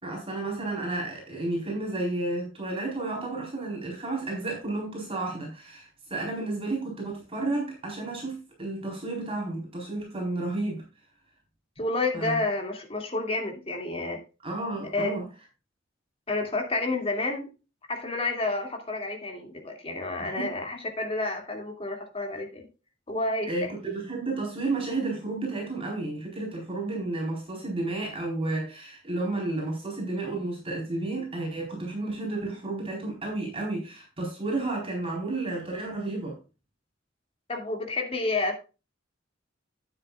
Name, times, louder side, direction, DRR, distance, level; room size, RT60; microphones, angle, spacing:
voice 1, 0.0-10.8 12.1-12.4 14.4-15.2 20.2-20.5 23.5-36.4, right 2 dB, 30° right, 4.3 m, -32 dB
voice 2, 11.8-14.2 14.9-15.2 16.3-17.5 17.9-22.7 23.1-23.7 37.5-38.6, left 2 dB, 30° left, 2.5 m, -30 dB
12.0 x 9.5 x 2.4 m
head